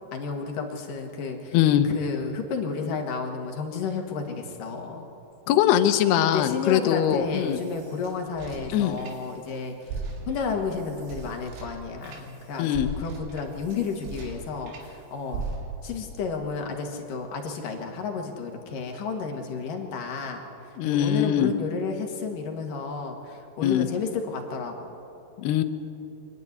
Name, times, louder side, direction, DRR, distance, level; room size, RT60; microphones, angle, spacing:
voice 1, 0.1-1.6 1.8-5.1 5.5-5.6 6.2-10.0 10.3-15.5 15.8-20.4 20.8-24.9, left 5 dB, 60° left, 3 dB, 2.9 m, -32 dB
voice 2, 1.5-1.9 5.5-7.6 8.7-9.0 12.6-12.9 20.8-21.5 23.6-23.9 25.4-25.6, left 11 dB, 75° left, 9 dB, 2.8 m, -22 dB
sound 1, 7.2-9.5 9.8-14.9 15.3-16.0, right 3 dB, 85° right, 4.6 m, -38 dB
25.0 x 11.0 x 9.8 m, 2.9 s
omnidirectional pair, 4.9 m